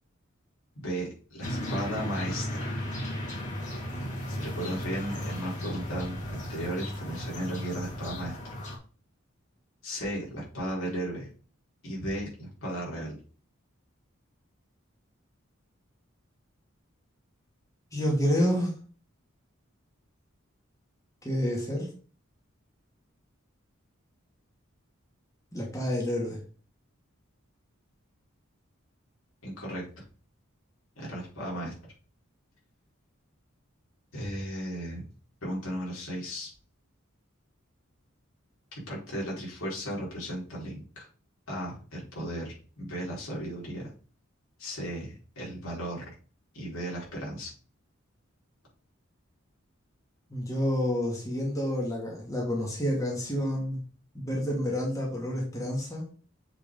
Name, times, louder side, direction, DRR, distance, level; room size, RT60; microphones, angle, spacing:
voice 1, 0.8-2.7 4.3-8.4 9.8-11.3 11.8-13.2 29.4-30.0 31.0-31.9 34.1-35.1 35.4-36.5 38.7-41.1 41.5-43.9 44.6-46.1 46.5-47.5, equal, 85° left, -4 dB, 4.6 m, -35 dB
sound 1, 1.4-8.8, equal, 35° left, 2.2 m, -35 dB
voice 2, 17.9-18.7 21.2-21.9 25.5-26.4 50.3-53.8 54.1-56.0, equal, 15° left, -2 dB, 2.2 m, -29 dB
7.3 x 6.6 x 3.9 m, 0.39 s
head